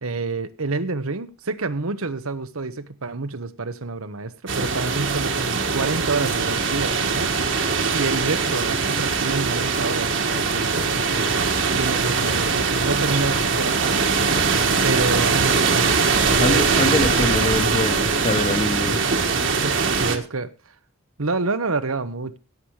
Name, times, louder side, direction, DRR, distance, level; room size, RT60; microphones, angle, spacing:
voice 1, 0.0-7.3 7.9-14.4 14.8-16.7 19.6-20.5 21.2-22.4, right 3 dB, 90° right, 1.2 m, -28 dB
sound 1, 4.5-20.2, right 4 dB, 60° right, 1.9 m, -21 dB
voice 2, 16.4-19.0, left 1 dB, 30° left, 1.3 m, -24 dB
17.0 x 7.5 x 4.9 m
head